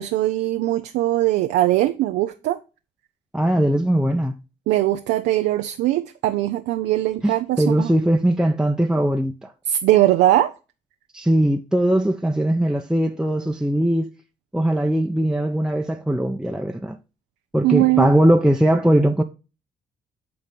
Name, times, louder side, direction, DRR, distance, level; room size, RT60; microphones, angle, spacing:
voice 1, 0.0-2.6 4.7-7.9 9.7-10.5 17.6-18.1, right 14 dB, 85° right, 0.5 m, -20 dB
voice 2, 3.3-4.4 7.2-9.5 11.1-14.1 14.5-17.0 17.5-19.2, right 1 dB, 5° right, 0.7 m, -20 dB
8.6 x 3.1 x 5.2 m
supercardioid pair, 55°, 18 cm